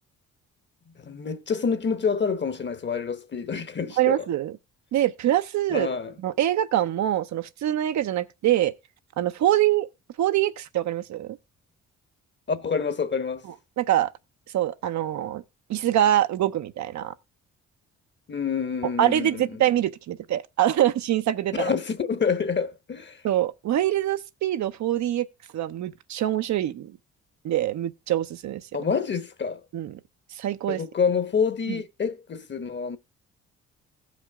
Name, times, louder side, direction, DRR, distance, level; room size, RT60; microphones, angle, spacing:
voice 1, 1.0-4.2 5.7-6.1 12.5-13.4 18.3-19.6 21.5-23.2 28.7-29.6 30.7-33.0, left 6 dB, 35° left, 1.0 m, -27 dB
voice 2, 4.0-4.6 4.9-5.9 6.2-8.7 9.2-9.9 10.2-11.4 13.8-14.1 14.5-15.4 15.7-17.1 19.0-21.7 23.2-25.3 25.5-27.0 27.4-28.6 29.7-30.0 30.3-30.8 31.7-31.8, right 12 dB, 70° right, 0.7 m, -24 dB
15.5 x 5.2 x 3.5 m
cardioid pair, 90°, 30 cm